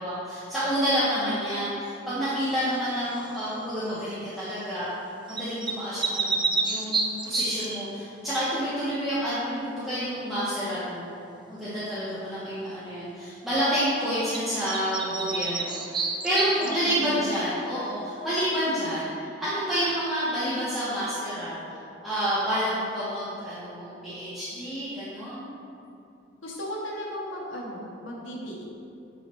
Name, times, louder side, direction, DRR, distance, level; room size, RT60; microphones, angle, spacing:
voice 1, 0.0-4.9 5.3-11.1 11.5-19.0 19.4-21.6 22.0-25.4, equal, ahead, -13 dB, 1.4 m, -29 dB
sound 1, 3.1-3.5 5.3-7.9 14.3-14.4 14.7-17.1, right 3 dB, 25° right, 0.5 m, -29 dB
voice 2, 16.6-17.2 26.4-28.6, equal, 85° left, -3 dB, 1.4 m, -36 dB
8.5 x 4.2 x 4.6 m, 2.6 s
head